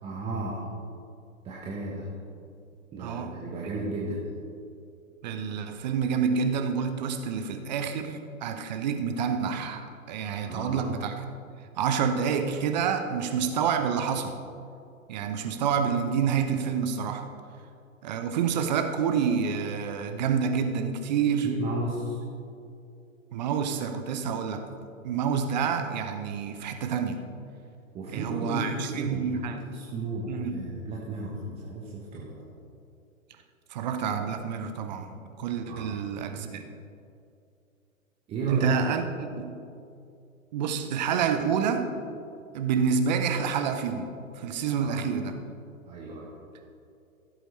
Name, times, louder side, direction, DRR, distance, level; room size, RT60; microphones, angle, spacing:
voice 1, 0.0-0.7 1.4-2.1 2.9-4.3 10.4-10.9 21.4-22.2 27.9-32.5 35.7-36.0 38.3-39.0 44.7-45.0 45.9-46.3, right 2 dB, 15° right, -5 dB, 1.1 m, -34 dB
voice 2, 3.0-3.3 5.2-11.1 11.8-14.4 15.1-17.3 18.0-21.5 23.3-24.7 25.0-27.2 28.1-29.6 30.3-30.5 33.7-35.1 35.4-36.7 38.5-39.6 40.5-41.9 42.5-44.1 44.4-45.4, right 6 dB, 30° right, 7 dB, 0.7 m, -28 dB
16.0 x 7.9 x 3.2 m, 2.5 s
figure-of-eight pair, 120°, 42 cm